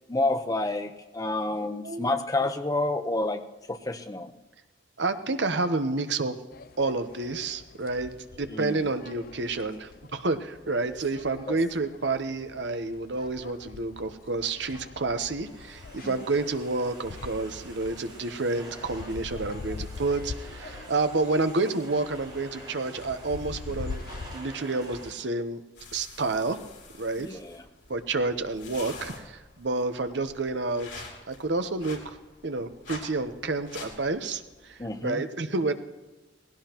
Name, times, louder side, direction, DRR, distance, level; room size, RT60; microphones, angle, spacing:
voice 1, 0.1-3.4 3.7-4.3 8.5-8.8 10.9-11.0 11.5-11.6 16.0-16.1 27.2-27.6 34.8-35.3, left 2 dB, 20° left, 7 dB, 0.9 m, -29 dB
voice 2, 1.6-2.1 5.0-6.4 6.8-8.1 8.4-24.0 24.3-25.6 25.9-26.6 27.0-27.4 27.9-32.2 32.4-35.7, right 3 dB, 65° right, 9 dB, 1.0 m, -29 dB
sound 1, 6.5-24.4, left 4 dB, 50° left, 0.4 m, -44 dB
Domestic sounds home sounds, 14.7-25.1, right 2 dB, 25° right, 4.4 m, -47 dB
sound 2, 25.8-34.9, left 3 dB, 70° left, 3.8 m, -47 dB
19.5 x 17.0 x 3.0 m, 1.2 s
head